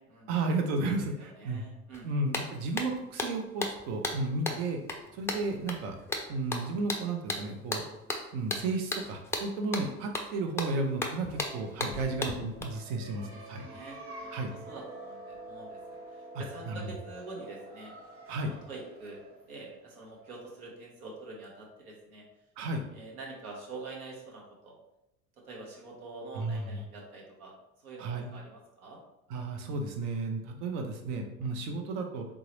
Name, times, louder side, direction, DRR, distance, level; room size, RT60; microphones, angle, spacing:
voice 1, 0.3-1.7 2.0-4.8 5.1-6.0 6.3-7.8 8.3-13.7 14.3-14.5 16.3-16.8 18.3-18.5 22.6-22.8 26.3-26.8 28.0-28.3 29.3-32.3, right 3 dB, 55° right, 4 dB, 0.9 m, -33 dB
voice 2, 1.2-2.1 12.7-12.8 13.2-13.4 13.6-14.3 14.6-15.8 16.1-17.9 18.4-22.2 22.9-24.8 25.4-29.0, right 3 dB, 70° right, -2 dB, 1.3 m, -46 dB
sound 1, 1.9-2.0 2.3-12.6, left 2 dB, 5° left, 0.4 m, -36 dB
sound 2, 11.2-20.6, right 2 dB, 30° right, 1.1 m, -48 dB
3.8 x 3.7 x 3.1 m, 0.88 s
figure-of-eight pair, 70°, 45 cm